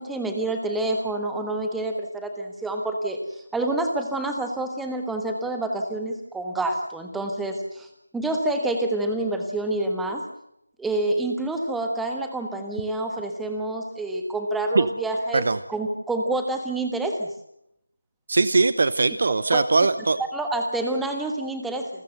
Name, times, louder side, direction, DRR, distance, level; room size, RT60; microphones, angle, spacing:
voice 1, 0.0-10.2 10.8-17.3 19.5-19.6 20.3-21.9, right 2 dB, ahead, 4 dB, 1.3 m, -28 dB
voice 2, 18.3-20.2, right 3 dB, 35° right, 16 dB, 0.8 m, -20 dB
28.5 x 14.0 x 8.0 m, 0.80 s
figure-of-eight pair, 165°, 0 cm